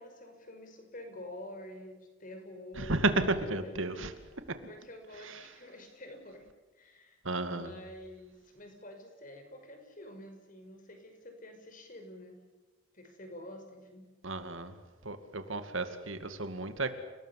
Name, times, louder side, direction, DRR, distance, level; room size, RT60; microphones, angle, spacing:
voice 1, 0.0-3.8 4.7-6.4 6.7-7.2 7.5-12.4 12.9-14.1, left 1 dB, 40° left, 5 dB, 5.9 m, -48 dB
voice 2, 2.8-4.1 4.5-4.6 5.2-5.5 7.2-7.7 14.2-14.8 15.0-16.9, right 2 dB, 70° right, 9 dB, 2.3 m, -32 dB
30.0 x 19.5 x 8.4 m, 1.2 s
head